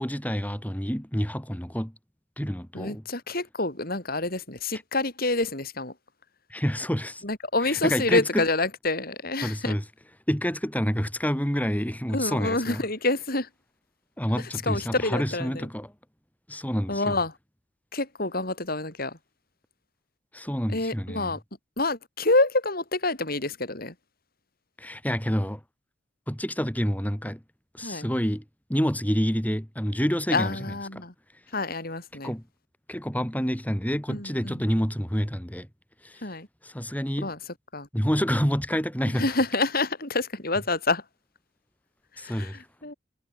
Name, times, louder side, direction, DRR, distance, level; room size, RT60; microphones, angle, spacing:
voice 1, 0.0-1.9 2.4-3.0 6.5-7.2 7.7-8.4 9.4-9.8 10.3-12.8 14.2-15.9 16.5-17.2 20.3-21.3 24.8-25.6 26.3-27.4 27.7-28.4 28.7-30.5 30.9-31.0 32.2-32.4 32.9-35.7 36.0-36.2 36.6-37.3 37.9-39.2 42.2-42.6, equal, 10° left, 6.5 m, -28 dB
voice 2, 2.7-5.9 7.2-9.8 12.1-13.5 14.4-15.7 16.9-17.3 17.9-19.2 20.7-21.4 21.8-23.9 27.8-28.1 30.3-31.1 31.5-32.3 34.1-34.7 36.2-36.5 37.2-37.4 37.7-37.9 39.1-41.0 42.2-42.9, left 2 dB, 50° left, 7.6 m, -27 dB
head